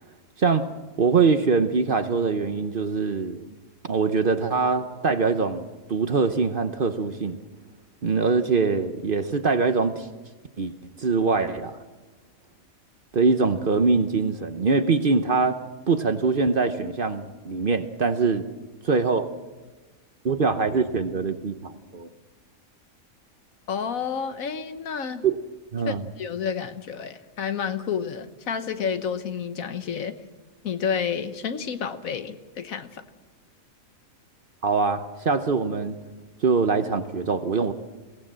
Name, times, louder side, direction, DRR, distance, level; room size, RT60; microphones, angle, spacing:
voice 1, 1.0-3.5 3.8-7.4 8.0-10.1 10.6-10.7 11.0-11.8 13.1-15.6 15.9-18.4 18.8-19.3 20.2-22.1 25.2-25.4 25.7-26.0 34.6-36.0 36.4-37.7, right 4 dB, 45° right, 9 dB, 0.9 m, -23 dB
voice 2, 23.7-25.2 25.8-30.1 30.6-33.0, left 6 dB, 75° left, 10 dB, 1.5 m, -30 dB
22.5 x 17.0 x 7.5 m, 1.3 s
omnidirectional pair, 1.5 m